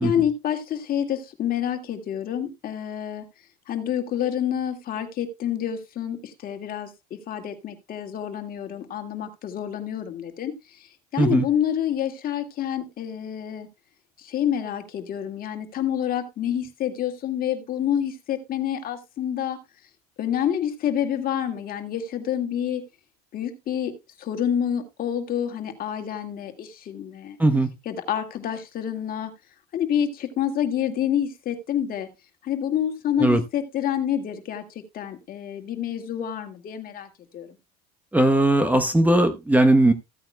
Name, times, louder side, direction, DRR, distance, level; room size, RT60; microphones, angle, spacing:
voice 1, 0.0-3.2 3.7-13.7 14.2-19.6 20.2-22.8 23.3-27.4 27.9-29.3 29.7-32.1 32.4-37.1 37.3-37.5, left 9 dB, 45° left, 2.0 m, -28 dB
voice 2, 27.4-27.7 33.2-33.4 38.1-39.9, right 1 dB, 10° right, 0.9 m, -18 dB
15.0 x 8.8 x 2.2 m
supercardioid pair, 100°, 20 cm